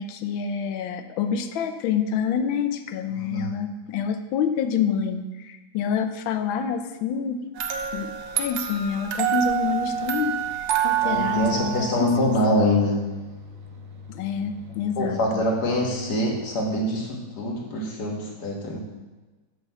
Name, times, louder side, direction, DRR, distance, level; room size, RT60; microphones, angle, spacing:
voice 1, 0.0-7.4 7.9-10.3 10.8-12.8 14.1-15.4, left 7 dB, 85° left, 8 dB, 1.4 m, -27 dB
voice 2, 3.1-3.5 11.0-13.0 15.0-18.8, left 1 dB, 55° left, -1 dB, 2.0 m, -24 dB
sound 1, 7.6-12.6, right 10 dB, 80° right, 1.5 m, -27 dB
sound 2, 11.4-16.4, left 5 dB, 55° right, 1.0 m, -43 dB
6.0 x 5.9 x 6.8 m, 1.2 s
omnidirectional pair, 2.1 m